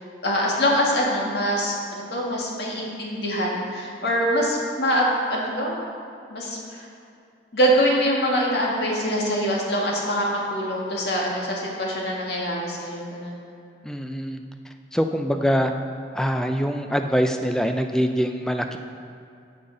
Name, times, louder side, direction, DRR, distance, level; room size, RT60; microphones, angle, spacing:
voice 1, 0.2-5.8 6.3-6.6 7.5-13.3, equal, 65° left, -3 dB, 1.7 m, -24 dB
voice 2, 13.8-14.4 14.9-15.7 16.1-18.8, equal, 5° left, 6 dB, 0.4 m, -24 dB
14.0 x 5.6 x 3.9 m, 2.5 s
head